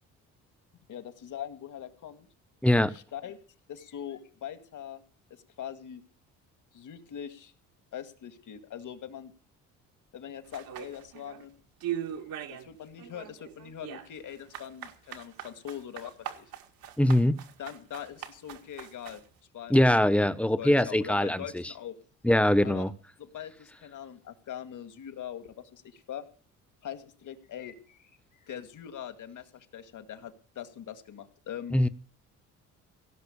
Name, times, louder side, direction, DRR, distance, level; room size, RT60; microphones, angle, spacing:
voice 1, 0.9-2.3 2.9-3.4 3.7-5.0 5.6-6.0 6.7-7.5 7.9-9.3 10.1-11.6 12.5-16.5 17.6-19.2 19.5-20.0 20.6-21.9 22.6-22.9 23.2-26.2 26.8-31.8, left 9 dB, 55° left, 9 dB, 2.1 m, -42 dB
voice 2, 2.6-2.9 17.0-17.4 19.7-21.6 22.2-22.9 31.7-31.9, left 1 dB, 5° left, 13 dB, 1.0 m, -22 dB
sound 1, 10.5-11.4 11.8-12.7 13.0-19.3, right 10 dB, 70° right, 2.0 m, -40 dB
17.0 x 6.0 x 8.7 m, 0.41 s
supercardioid pair, 70°, 36 cm